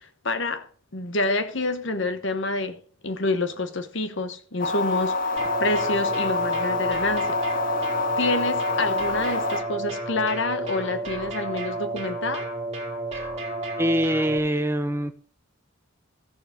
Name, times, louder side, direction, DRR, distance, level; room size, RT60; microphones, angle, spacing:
voice 1, 0.0-7.4 8.2-12.5, left 2 dB, 60° left, 1.1 m, -28 dB
sound 1, 4.6-9.6, left 3 dB, 40° left, 0.8 m, -26 dB
sound 2, 5.4-14.4, right 2 dB, 30° right, 2.6 m, -32 dB
voice 2, 13.8-15.1, equal, 10° right, 0.7 m, -24 dB
14.0 x 7.1 x 3.9 m
head